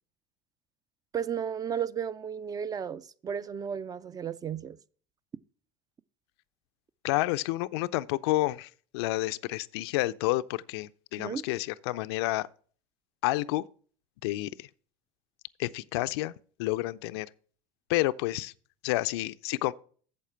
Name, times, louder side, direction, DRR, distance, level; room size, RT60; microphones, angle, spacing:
voice 1, 1.1-4.8 11.2-11.4, right 8 dB, 30° right, 0.5 m, -34 dB
voice 2, 7.0-12.5 13.2-13.6 14.2-14.7 15.6-16.3 16.6-17.3 17.9-18.5 18.8-19.7, left 18 dB, 80° left, 0.4 m, -29 dB
8.6 x 7.2 x 4.5 m
supercardioid pair, 95°, 13 cm